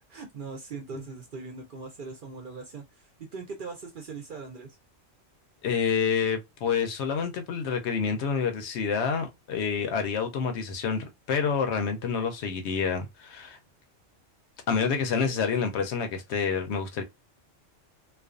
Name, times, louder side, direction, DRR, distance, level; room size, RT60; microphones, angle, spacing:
voice 1, 0.0-4.8, right 4 dB, 55° right, 0.6 m, -40 dB
voice 2, 5.6-13.6 14.7-17.0, left 6 dB, 70° left, 0.8 m, -28 dB
2.4 x 2.3 x 2.3 m
omnidirectional pair, 1.2 m